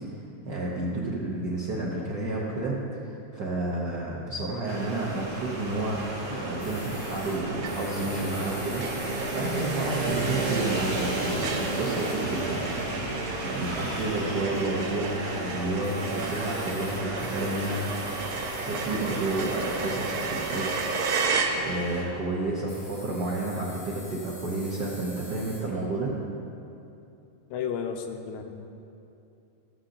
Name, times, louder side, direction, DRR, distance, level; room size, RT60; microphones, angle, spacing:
voice 1, 0.4-2.8 3.3-17.8 18.7-21.0 21.2-21.3 21.6-26.1, right 2 dB, 70° right, -5 dB, 1.0 m, -31 dB
sound 1, 4.7-22.0, right 2 dB, 40° right, 1.7 m, -33 dB
sound 2, 6.6-12.2 14.5-14.8 15.5-15.6 15.8-21.3 22.7-25.6, left 1 dB, 40° left, 3.4 m, -46 dB
sound 3, 7.6-8.1 8.4-8.5 8.8-22.1, right 4 dB, 90° right, 1.1 m, -34 dB
voice 2, 27.5-28.4, left 7 dB, 85° left, 5 dB, 2.1 m, -32 dB
13.0 x 8.8 x 3.9 m, 2.7 s
omnidirectional pair, 3.4 m